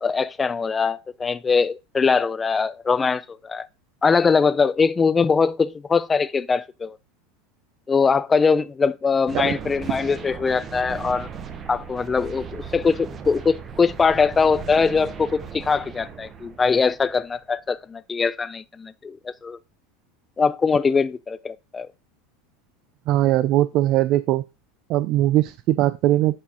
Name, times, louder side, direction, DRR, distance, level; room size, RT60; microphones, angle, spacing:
voice 1, 0.0-3.7 4.0-7.0 7.9-11.3 11.7-19.6 20.4-21.9, left 5 dB, 20° left, 0.5 m, -22 dB
sound 1, 9.3-17.4, right 6 dB, 30° right, 1.2 m, -37 dB
voice 2, 23.1-24.4 24.9-26.4, right 14 dB, 55° right, 0.4 m, -20 dB
11.0 x 4.5 x 3.0 m
hypercardioid pair, 95°, 0 cm